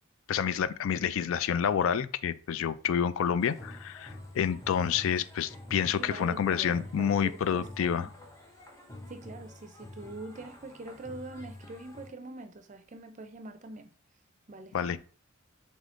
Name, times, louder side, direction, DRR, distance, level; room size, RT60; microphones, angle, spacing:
voice 1, 0.3-8.1 14.7-15.0, left 8 dB, 70° left, 0.3 m, -28 dB
sound 1, 3.4-12.1, left 1 dB, 15° left, 0.7 m, -48 dB
voice 2, 5.9-8.1 9.1-13.9 14.5-15.0, right 2 dB, 35° right, 0.4 m, -44 dB
4.0 x 3.5 x 3.7 m
head